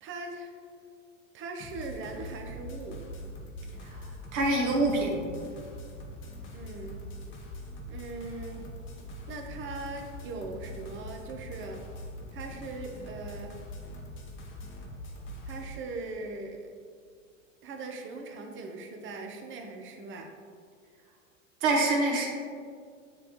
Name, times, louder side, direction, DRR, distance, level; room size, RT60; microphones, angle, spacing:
voice 1, 0.0-0.5 1.3-3.0 6.5-7.0 7.9-8.6 9.3-11.8 12.3-13.6 15.4-16.6 17.6-20.3, right 3 dB, 30° right, 3 dB, 0.9 m, -40 dB
sound 1, 1.6-15.7, equal, 30° left, 1.1 m, -43 dB
voice 2, 3.8-5.2 21.6-22.3, right 2 dB, 50° right, -1 dB, 1.5 m, -26 dB
9.4 x 3.4 x 3.1 m, 2.1 s
hypercardioid pair, 105°, 39 cm